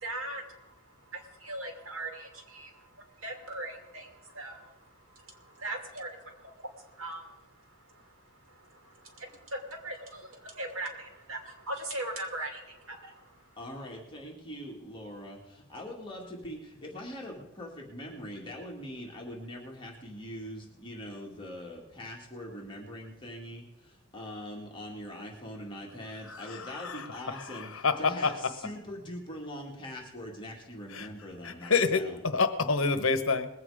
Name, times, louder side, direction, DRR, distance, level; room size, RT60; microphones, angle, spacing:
voice 1, 0.0-0.4 1.1-2.7 3.2-4.1 4.3-4.7 5.4-6.5 7.0-7.3 9.0-13.2, right 2 dB, 70° right, 2 dB, 2.8 m, -39 dB
voice 2, 13.6-32.2, equal, 25° left, -1 dB, 2.2 m, -42 dB
voice 3, 26.6-27.0 27.5-28.3 30.9-31.1 31.4-32.0 32.3-33.5, left 4 dB, 70° left, 10 dB, 1.1 m, -27 dB
20.5 x 8.3 x 4.9 m, 0.95 s
head